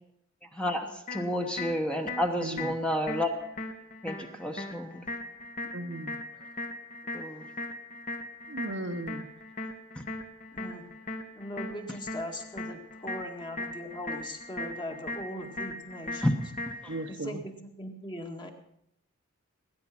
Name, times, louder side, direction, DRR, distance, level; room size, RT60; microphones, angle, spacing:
voice 1, 0.6-3.3 4.0-5.0 7.1-7.5 16.2-16.3, left 1 dB, 5° left, 3 dB, 1.1 m, -30 dB
sound 1, 1.1-17.1, left 2 dB, 40° left, 1.4 m, -39 dB
voice 2, 2.4-2.8 5.7-6.2 8.5-9.3 16.9-17.4, right 1 dB, 60° right, 8 dB, 0.9 m, -36 dB
voice 3, 10.5-10.8 11.3-16.4 17.1-18.5, equal, 20° left, 3 dB, 1.8 m, -40 dB
19.0 x 9.7 x 6.0 m, 0.74 s
head